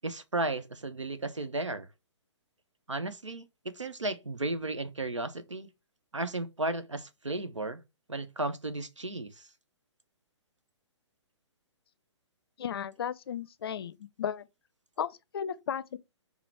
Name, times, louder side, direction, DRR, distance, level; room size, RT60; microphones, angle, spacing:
voice 1, 0.0-1.9 2.9-5.7 6.1-7.8 8.1-9.4, right 2 dB, 90° right, 0.7 m, -34 dB
voice 2, 12.6-14.4 15.0-16.0, left 8 dB, 55° left, 0.5 m, -35 dB
5.6 x 2.0 x 4.5 m
figure-of-eight pair, 130°, 15 cm